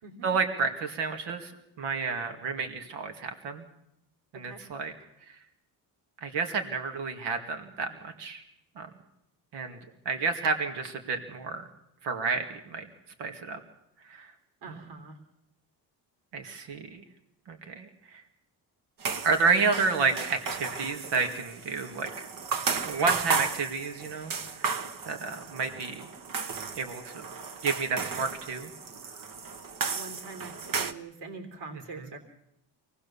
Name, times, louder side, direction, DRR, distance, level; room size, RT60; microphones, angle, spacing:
voice 1, 0.2-1.5 1.8-3.7 4.3-4.9 6.2-8.4 8.8-8.9 9.5-9.8 10.1-11.7 12.0-12.9 13.2-13.6 14.1-14.3 14.7-14.8 16.3-17.0 17.5-18.2 19.2-22.3 22.8-24.6 25.0-26.0 26.8-27.2 27.6-28.7 32.0-32.1, right 4 dB, 90° right, 6 dB, 2.3 m, -30 dB
voice 2, 14.6-15.2 29.9-32.2, right 3 dB, 75° right, 5 dB, 3.4 m, -43 dB
sound 1, 19.0-30.9, right 5 dB, 50° right, 1.3 m, -34 dB
25.0 x 18.5 x 7.0 m, 0.81 s
cardioid pair, 135°, 41 cm